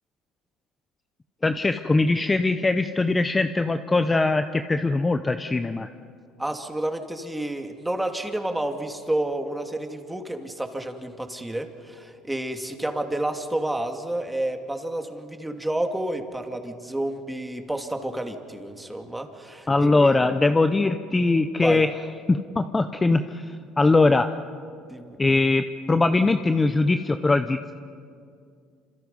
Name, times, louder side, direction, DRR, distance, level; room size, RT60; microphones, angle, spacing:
voice 1, 1.4-5.9 19.7-21.9 22.3-24.3 25.2-27.7, left 3 dB, 20° left, 9 dB, 0.9 m, -21 dB
voice 2, 6.4-20.2 21.6-21.8 24.8-25.2, right 1 dB, 5° right, 5 dB, 2.5 m, -30 dB
28.0 x 26.5 x 5.5 m, 2.3 s
supercardioid pair, 95°, 0 cm